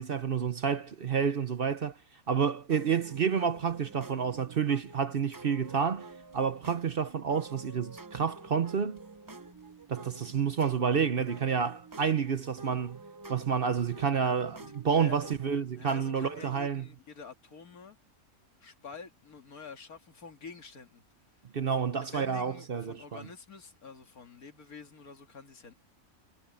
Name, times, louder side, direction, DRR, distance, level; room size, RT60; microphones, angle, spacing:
voice 1, 0.0-2.0 2.3-6.1 6.3-9.0 9.9-13.0 13.3-16.9 21.5-23.2, right 6 dB, 45° right, 0.9 m, -29 dB
sound 1, 2.7-16.6, right 3 dB, 20° right, 0.6 m, -49 dB
voice 2, 14.9-15.3 15.7-18.0 18.6-21.0 22.0-25.7, left 5 dB, 85° left, 2.6 m, -48 dB
omnidirectional pair, 1.5 m